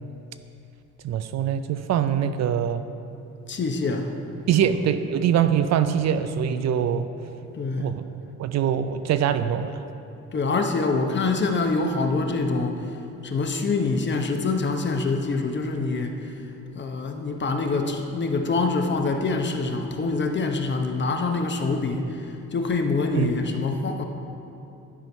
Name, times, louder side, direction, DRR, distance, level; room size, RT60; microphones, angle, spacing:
voice 1, 1.0-2.8 4.5-7.1 7.8-8.0 8.4-9.8 23.2-23.3, right 9 dB, 60° right, 11 dB, 0.5 m, -23 dB
voice 2, 3.5-4.1 4.6-4.7 7.5-7.9 10.3-12.9 13.2-16.1 16.7-24.0, left 3 dB, 40° left, 4 dB, 0.8 m, -25 dB
11.0 x 4.5 x 5.3 m, 2.7 s
cardioid pair, 90°, 30 cm